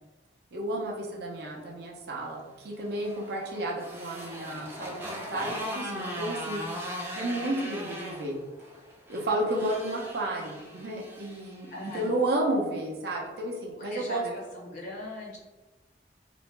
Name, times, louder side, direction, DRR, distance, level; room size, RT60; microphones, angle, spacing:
voice 1, 0.5-6.6 7.2-8.4 9.1-14.2, right 1 dB, 65° right, -2 dB, 0.5 m, -32 dB
Motorcycle, 2.7-12.1, equal, 15° right, 0.4 m, -39 dB
voice 2, 11.7-12.1 13.8-15.4, left 1 dB, 50° left, -2 dB, 0.5 m, -39 dB
2.5 x 2.1 x 3.1 m, 1.2 s
head